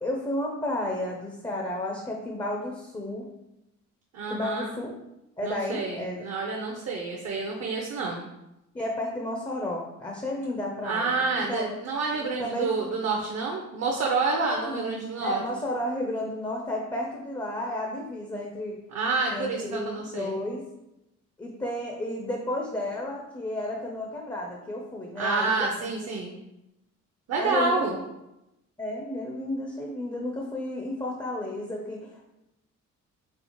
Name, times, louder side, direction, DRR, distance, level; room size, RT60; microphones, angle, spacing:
voice 1, 0.0-3.3 4.3-4.9 5.4-6.3 8.7-11.7 12.4-12.9 14.5-18.8 19.3-20.6 21.4-25.8 27.4-27.9 28.8-32.3, left 1 dB, 15° left, 0 dB, 0.5 m, -32 dB
voice 2, 4.1-4.7 5.4-8.2 10.8-15.4 18.9-20.4 25.2-26.3 27.3-28.0, right 4 dB, 60° right, 0 dB, 0.6 m, -28 dB
4.2 x 2.0 x 2.9 m, 0.90 s
cardioid pair, 90°, 30 cm